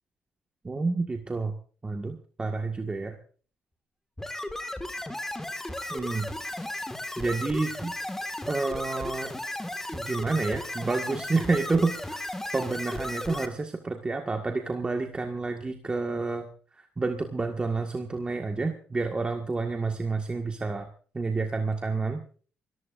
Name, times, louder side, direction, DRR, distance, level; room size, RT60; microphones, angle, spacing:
voice 1, 0.6-1.5 1.8-3.2 5.9-6.3 7.2-7.9 8.5-9.3 9.9-12.2 12.5-16.5 16.7-20.9 21.1-22.2, right 3 dB, 25° right, 4 dB, 1.7 m, -29 dB
sound 1, 4.2-13.5, left 1 dB, 10° left, 1.9 m, -35 dB
28.5 x 14.5 x 2.6 m, 0.41 s
cardioid pair, 90°, 4 cm